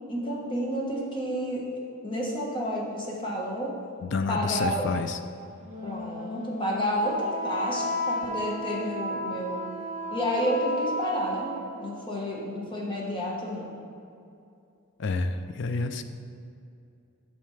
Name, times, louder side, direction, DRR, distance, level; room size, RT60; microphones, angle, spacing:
voice 1, 0.1-3.8 4.3-4.9 5.8-9.6 10.1-13.8, equal, 25° left, -4 dB, 1.2 m, -30 dB
voice 2, 4.0-5.2 15.0-16.0, left 4 dB, 55° left, 9 dB, 0.4 m, -29 dB
Wind instrument woodwind instrument, 5.6-11.8, left 1 dB, 35° right, 1.2 m, -33 dB
9.1 x 6.1 x 3.3 m, 2.5 s
head